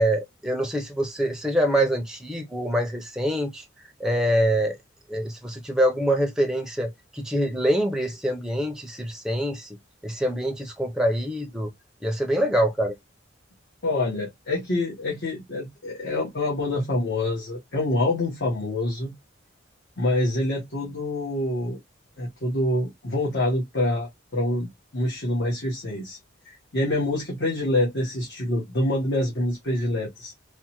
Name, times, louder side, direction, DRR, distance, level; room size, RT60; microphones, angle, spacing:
voice 1, 0.0-3.7 4.0-4.8 5.1-9.7 10.0-11.7 12.0-13.0, right 1 dB, 5° right, 0.5 m, -25 dB
voice 2, 13.8-19.1 20.0-21.8 22.2-26.2 26.4-30.3, left 1 dB, 55° left, 1.0 m, -26 dB
3.4 x 2.1 x 2.9 m
head